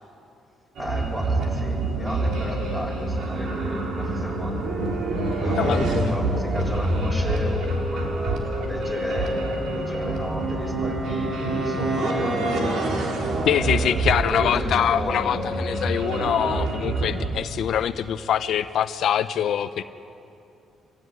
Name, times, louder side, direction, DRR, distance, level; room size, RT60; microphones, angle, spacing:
voice 1, 0.8-4.6 5.4-8.1 8.6-12.6 13.5-15.5, equal, 5° right, 0 dB, 7.1 m, -33 dB
sound 1, 0.8-17.3, right 2 dB, 75° right, 4.0 m, -26 dB
voice 2, 5.5-6.1 13.4-19.8, left 9 dB, 70° left, 10 dB, 0.7 m, -24 dB
26.0 x 16.0 x 9.6 m, 2.6 s
cardioid pair, 90°, 0 cm